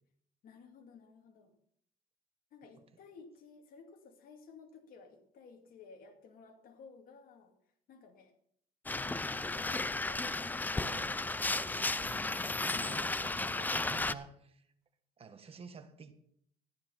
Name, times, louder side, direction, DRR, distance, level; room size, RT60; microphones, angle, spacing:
voice 1, 0.4-1.5 2.5-7.5 7.9-8.4 8.9-11.1, left 5 dB, 65° left, 3 dB, 2.4 m, -56 dB
sound 1, 8.9-14.1, left 2 dB, 10° left, 0.5 m, -34 dB
voice 2, 10.8-14.6 15.2-16.1, right 5 dB, 35° right, 7 dB, 1.8 m, -50 dB
14.0 x 10.5 x 5.6 m, 0.67 s
cardioid pair, 110°, 16 cm